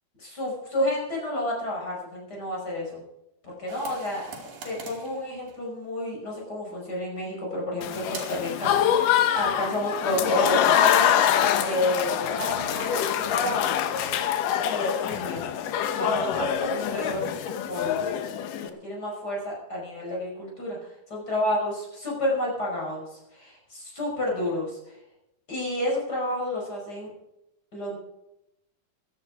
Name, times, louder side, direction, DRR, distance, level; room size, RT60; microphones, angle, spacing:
voice 1, 0.2-3.0 3.4-4.3 4.6-11.1 11.6-13.6 14.7-15.4 15.9-18.0 18.5-25.0 25.5-27.1 27.7-28.0, left 1 dB, 25° left, -2 dB, 5.8 m, -30 dB
sound 1, 3.7-6.1 8.1-8.5, right 5 dB, 70° right, 4.2 m, -42 dB
Applause / Crowd, 7.8-18.7, left 10 dB, 75° left, 2.5 m, -25 dB
16.5 x 12.0 x 4.9 m, 0.87 s
omnidirectional pair, 4.1 m